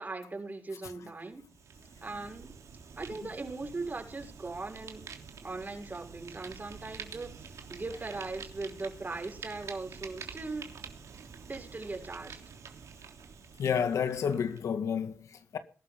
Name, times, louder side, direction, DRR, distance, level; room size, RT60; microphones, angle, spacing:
voice 1, 0.0-1.5 2.0-2.6 3.0-5.1 5.4-10.7 11.4-12.4, right 3 dB, 35° right, 6.6 m, -39 dB
Fire, 1.3-14.6, right 6 dB, 75° right, 3.3 m, -48 dB
voice 2, 13.6-15.6, left 7 dB, 80° left, 2.1 m, -30 dB
21.5 x 12.5 x 3.8 m
cardioid pair, 60°, 5 cm